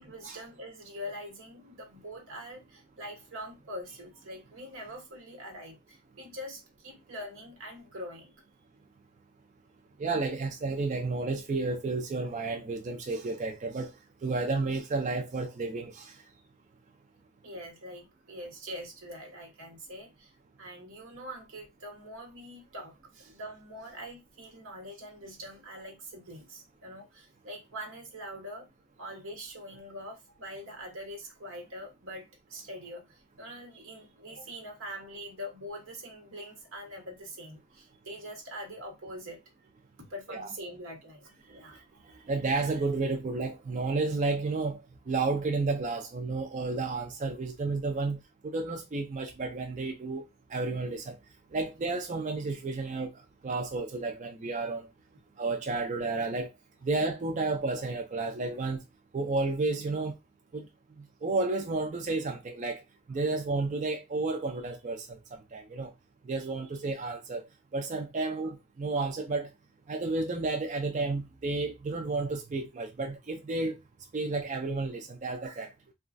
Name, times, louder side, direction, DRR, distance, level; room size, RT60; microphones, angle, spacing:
voice 1, 0.0-8.3 17.4-20.3 20.6-28.7 29.0-39.4 40.0-42.2, equal, 60° right, 1.0 m, -44 dB
voice 2, 10.0-13.9 14.2-16.2 40.3-40.5 42.2-44.8 45.1-50.2 50.5-51.2 51.5-53.1 53.4-54.9 55.4-56.5 56.8-58.8 59.1-60.1 60.5-60.7 61.2-62.8 63.1-65.9 66.3-67.5 67.7-69.5 69.9-73.8 74.1-75.7, right 3 dB, 35° right, 0.3 m, -31 dB
3.0 x 2.3 x 2.5 m
head